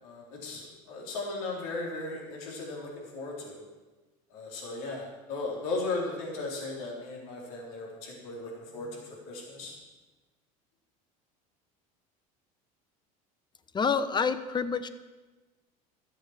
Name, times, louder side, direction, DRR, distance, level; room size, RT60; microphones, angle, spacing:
voice 1, 0.0-3.6 4.3-9.8, left 3 dB, 80° left, -2 dB, 3.7 m, -37 dB
voice 2, 13.7-14.9, left 5 dB, 25° left, 12 dB, 0.9 m, -27 dB
13.0 x 7.9 x 7.3 m, 1.2 s
supercardioid pair, 95°, 19 cm